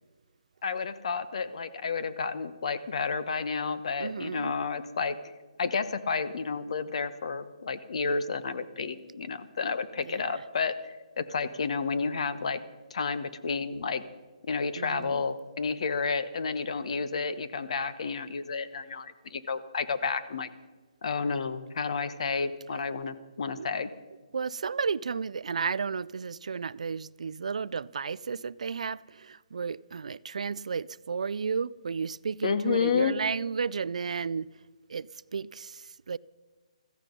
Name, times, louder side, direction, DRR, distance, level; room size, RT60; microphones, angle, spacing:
voice 1, 0.6-5.3 5.6-10.7 11.2-12.6 12.9-14.0 14.5-20.5 21.0-23.9 32.4-33.2, left 5 dB, 60° left, 1.1 m, -31 dB
voice 2, 4.0-4.5 10.0-10.4 14.8-15.2 23.5-23.7 24.3-34.5 34.9-35.1 35.3-36.2, right 5 dB, 75° right, 0.4 m, -33 dB
15.5 x 14.5 x 5.3 m
hypercardioid pair, 155°, 4 cm